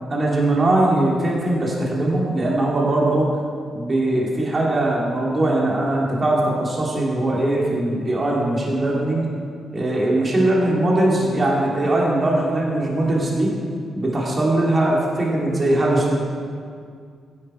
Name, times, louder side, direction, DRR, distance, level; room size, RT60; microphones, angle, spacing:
voice 1, 0.1-3.3 3.7-9.3 9.7-13.5 13.9-16.1, right 1 dB, 30° right, -4 dB, 2.8 m, -20 dB
15.0 x 11.0 x 4.5 m, 2.2 s
cardioid pair, 135°, 0 cm